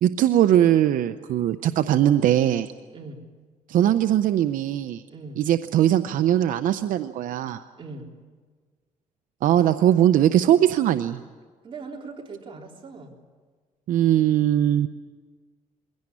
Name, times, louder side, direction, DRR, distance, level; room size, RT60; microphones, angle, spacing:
voice 1, 0.0-2.7 3.7-5.0 5.4-7.6 9.4-11.2 13.9-14.9, right 11 dB, 75° right, 10 dB, 0.7 m, -20 dB
voice 2, 5.1-5.4 7.7-8.1 11.6-13.2, right 3 dB, 40° right, 0 dB, 3.7 m, -40 dB
22.5 x 17.0 x 9.8 m, 1.5 s
cardioid pair, 110°, 14 cm